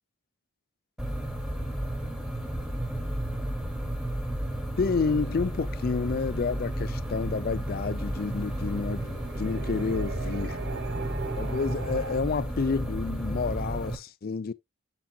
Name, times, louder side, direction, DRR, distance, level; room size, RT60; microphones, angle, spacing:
sound 1, 1.0-14.0, right 1 dB, 5° right, 1.0 m, -32 dB
voice 1, 4.8-10.6 11.4-14.5, left 4 dB, 45° left, 0.4 m, -29 dB
sound 2, 5.1-12.2, right 5 dB, 55° right, 0.9 m, -42 dB
7.0 x 6.0 x 2.8 m
head